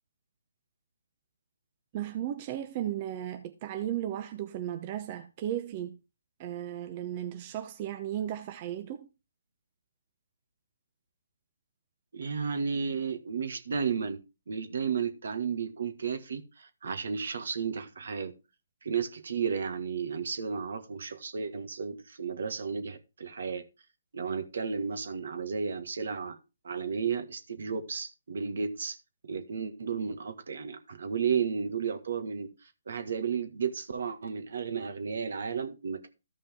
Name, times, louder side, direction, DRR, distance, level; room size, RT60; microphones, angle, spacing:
voice 1, 1.9-6.0 6.4-9.1, right 11 dB, 30° right, 0.8 m, -35 dB
voice 2, 12.1-14.2 14.5-18.3 18.8-23.6 24.1-26.4 26.6-29.0 29.2-36.1, right 6 dB, 65° right, 1.6 m, -33 dB
14.0 x 5.4 x 3.6 m
hypercardioid pair, 150°, 0 cm